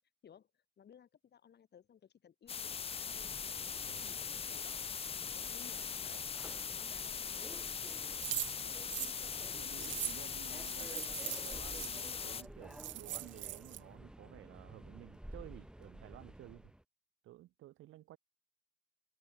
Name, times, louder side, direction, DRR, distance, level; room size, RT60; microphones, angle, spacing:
voice 1, 0.2-3.3 3.6-5.1 5.3-7.6, left 8 dB, 55° left, 7.5 m, -60 dB
sound 1, 2.5-12.4, left 6 dB, 30° left, 0.5 m, -41 dB
Subway metro underground, 2.5-16.8, right 1 dB, 5° right, 1.7 m, -53 dB
sound 2, 8.2-11.9 12.4-12.5 12.7-13.8, right 15 dB, 70° right, 0.5 m, -41 dB
voice 2, 8.3-8.9 9.5-16.7 17.2-18.2, right 15 dB, 85° right, 2.7 m, -54 dB
cardioid pair, 90°, 20 cm